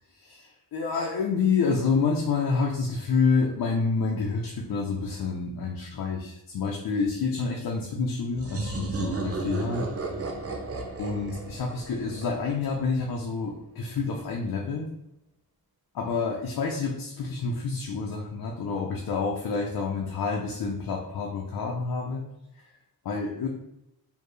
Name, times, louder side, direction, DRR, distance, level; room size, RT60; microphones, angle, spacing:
voice 1, 0.2-9.9 11.0-14.9 15.9-22.2 22.6-22.7 23.0-23.5, left 4 dB, 65° left, -1 dB, 0.7 m, -28 dB
sound 1, 8.4-12.9, right 2 dB, 40° right, 0.7 m, -33 dB
4.4 x 2.9 x 3.1 m, 0.87 s
wide cardioid pair, 130°, 37 cm